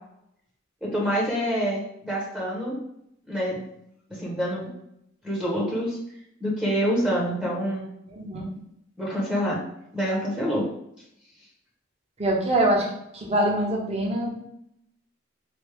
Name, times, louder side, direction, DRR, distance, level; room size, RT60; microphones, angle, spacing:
voice 1, 0.8-2.7 3.3-3.7 4.1-4.7 5.2-6.0 6.4-7.9 9.0-9.6 9.9-10.7, equal, 5° right, -4 dB, 0.8 m, -26 dB
voice 2, 8.1-8.5 12.2-14.3, right 1 dB, 35° right, -1 dB, 0.8 m, -24 dB
3.4 x 2.6 x 3.2 m, 0.76 s
head